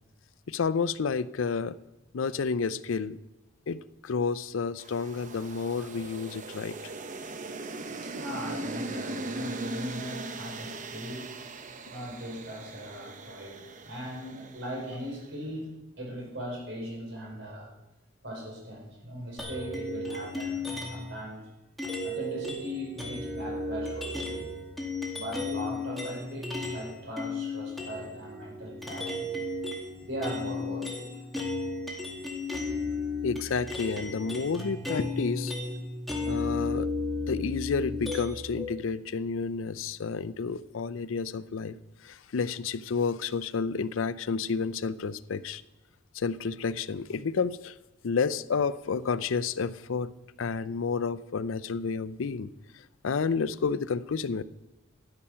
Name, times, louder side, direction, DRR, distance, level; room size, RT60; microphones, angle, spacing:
voice 1, 0.5-1.7 2.1-3.2 3.7-6.8 33.2-35.5 36.3-36.9 37.2-41.8 42.0-45.6 46.1-47.8 48.0-50.1 50.4-52.5 53.0-54.4, left 5 dB, 85° left, 16 dB, 0.5 m, -30 dB
sound 1, 4.8-15.1, right 2 dB, 40° right, 0.8 m, -39 dB
voice 2, 8.0-11.4 11.8-17.7 18.2-21.5 22.0-24.5 25.1-29.4 30.0-31.1, equal, 65° right, 0 dB, 4.4 m, -39 dB
sound 2, 19.4-21.1 21.8-26.9 27.2-38.6, left 2 dB, ahead, 2.1 m, -34 dB
12.5 x 8.8 x 5.7 m, 0.99 s
head